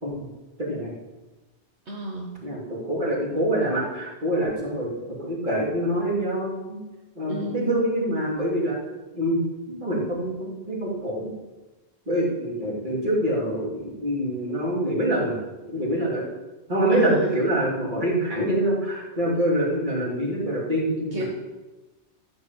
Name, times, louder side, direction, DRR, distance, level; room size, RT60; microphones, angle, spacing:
voice 1, 0.6-0.9 2.4-6.8 7.2-8.8 9.1-9.4 9.7-11.3 12.1-15.4 15.7-16.2 16.7-21.3, right 1 dB, 45° right, -5 dB, 3.5 m, -25 dB
voice 2, 1.9-2.3 7.3-7.8 16.9-17.3 21.1-21.3, equal, 75° right, -2 dB, 1.7 m, -31 dB
14.0 x 5.3 x 7.7 m, 1.1 s
omnidirectional pair, 1.1 m